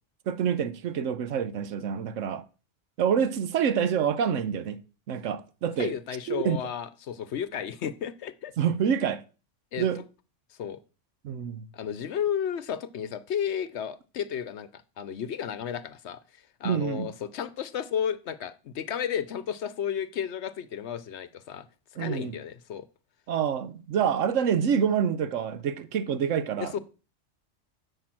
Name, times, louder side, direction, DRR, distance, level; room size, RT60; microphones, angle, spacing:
voice 1, 0.3-2.4 3.0-4.8 5.1-5.9 6.3-6.6 8.6-9.2 9.8-10.0 11.2-11.7 16.6-17.1 22.0-22.3 23.3-26.8, right 8 dB, 85° right, 1.1 m, -27 dB
voice 2, 5.8-8.5 9.7-9.9 10.6-10.8 11.7-16.2 16.6-21.7 22.0-22.8 26.6-26.8, left 8 dB, 65° left, 0.9 m, -33 dB
10.5 x 5.1 x 7.5 m
omnidirectional pair, 1.3 m